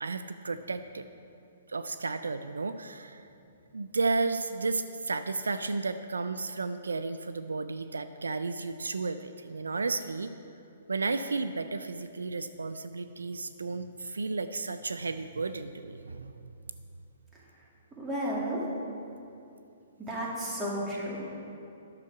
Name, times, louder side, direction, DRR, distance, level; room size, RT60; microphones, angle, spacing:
voice 1, 0.0-1.0 1.7-3.2 3.7-10.3 10.9-16.3, right 3 dB, 85° right, 10 dB, 0.3 m, -33 dB
voice 2, 18.0-18.6 20.1-21.4, equal, 15° right, -5 dB, 2.2 m, -33 dB
9.7 x 7.0 x 4.7 m, 2.6 s
hypercardioid pair, 125°, 0 cm